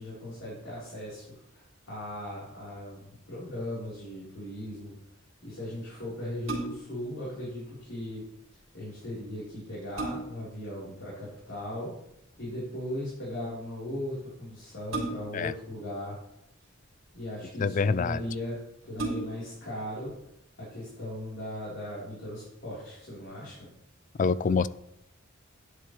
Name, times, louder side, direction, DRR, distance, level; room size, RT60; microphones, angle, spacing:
voice 1, 0.0-5.0 5.4-8.2 8.7-11.9 12.4-16.2 17.1-20.1 20.6-23.7, left 1 dB, 65° left, -9 dB, 4.0 m, -38 dB
sound 1, 6.4-7.0 9.0-9.1 9.6-10.5 12.1-12.4 14.9-15.5 16.5-17.2 17.9-18.0 18.3-18.4 18.9-19.6 20.1-20.2, right 2 dB, 75° right, 3.3 m, -35 dB
voice 2, 17.6-18.2 24.2-24.7, left 5 dB, 40° left, 17 dB, 0.3 m, -25 dB
11.0 x 9.8 x 3.3 m, 0.82 s
head